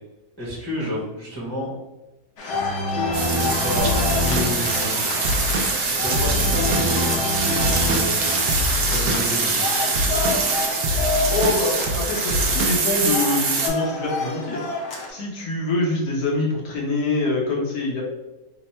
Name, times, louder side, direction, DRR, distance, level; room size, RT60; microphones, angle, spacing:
voice 1, 0.4-1.7 3.2-5.2 5.6-9.6, equal, 15° left, -6 dB, 0.6 m, -30 dB
sound 1, 2.4-15.1, left 2 dB, 55° left, 0.9 m, -27 dB
sound 2, 3.1-13.7, right 4 dB, 55° right, 0.7 m, -24 dB
Drum kit / Drum, 3.8-7.3 7.6-13.1, left 1 dB, 90° right, 1.1 m, -26 dB
voice 2, 11.3-14.6 15.1-18.0, left 2 dB, 75° left, -2 dB, 1.4 m, -24 dB
3.4 x 2.1 x 4.2 m, 1.1 s
omnidirectional pair, 1.6 m